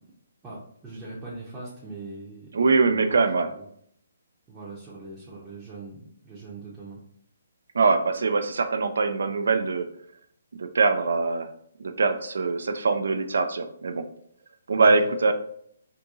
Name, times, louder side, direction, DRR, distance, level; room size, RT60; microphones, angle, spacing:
voice 1, 0.4-2.5 2.9-3.2 3.6-3.7 4.5-7.0 14.9-15.3, right 3 dB, 15° right, -8 dB, 0.7 m, -41 dB
voice 2, 2.5-3.5 7.7-9.9 10.6-11.5 11.8-14.0 14.7-15.3, right 4 dB, 65° right, 8 dB, 0.3 m, -23 dB
2.6 x 2.6 x 3.5 m, 0.67 s
figure-of-eight pair, 135°, 0 cm